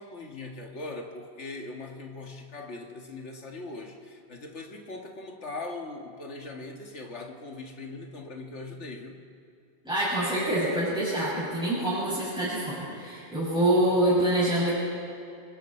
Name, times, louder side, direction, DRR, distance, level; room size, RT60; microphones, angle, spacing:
voice 1, 0.0-9.2, left 2 dB, 85° left, 2 dB, 2.1 m, -40 dB
voice 2, 9.8-14.8, right 1 dB, 5° right, -10 dB, 6.5 m, -26 dB
29.0 x 23.0 x 4.4 m, 2.6 s
omnidirectional pair, 1.2 m